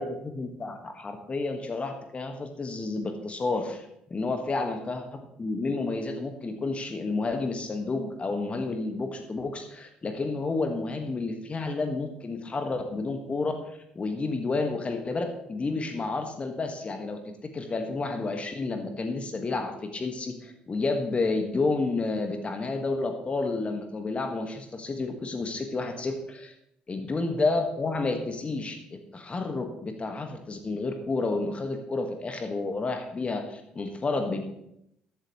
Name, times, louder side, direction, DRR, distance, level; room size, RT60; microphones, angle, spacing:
voice 1, 0.0-3.9 4.1-5.1 5.4-13.5 14.0-26.5 26.9-34.4, left 3 dB, 30° left, 5 dB, 1.7 m, -30 dB
15.0 x 11.0 x 3.2 m, 0.80 s
figure-of-eight pair, 50°, 4 cm